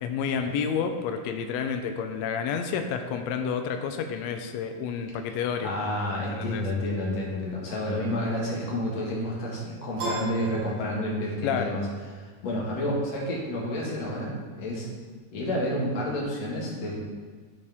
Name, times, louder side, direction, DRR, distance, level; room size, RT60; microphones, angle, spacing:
voice 1, 0.0-5.7 6.3-6.6 11.4-11.7, left 6 dB, 85° left, 6 dB, 1.5 m, -30 dB
voice 2, 5.6-11.8 12.4-14.9 15.3-16.9, left 1 dB, 60° left, -4 dB, 2.7 m, -30 dB
Piano, 10.0-11.5, right 2 dB, 75° right, 3.8 m, -35 dB
13.0 x 4.3 x 3.6 m, 1.5 s
omnidirectional pair, 3.7 m